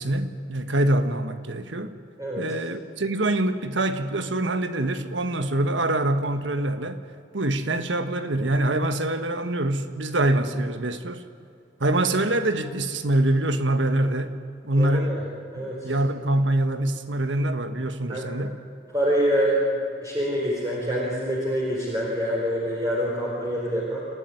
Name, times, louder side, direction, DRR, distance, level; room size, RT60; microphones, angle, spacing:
voice 1, 0.0-1.9 2.4-7.0 7.3-11.2 11.8-14.4 14.6-15.2 15.5-18.6, right 1 dB, 85° right, 9 dB, 1.5 m, -25 dB
voice 2, 14.7-15.2 15.5-15.9 18.1-18.3 18.9-24.0, equal, 20° right, -4 dB, 4.6 m, -26 dB
29.0 x 13.5 x 9.9 m, 2.5 s
head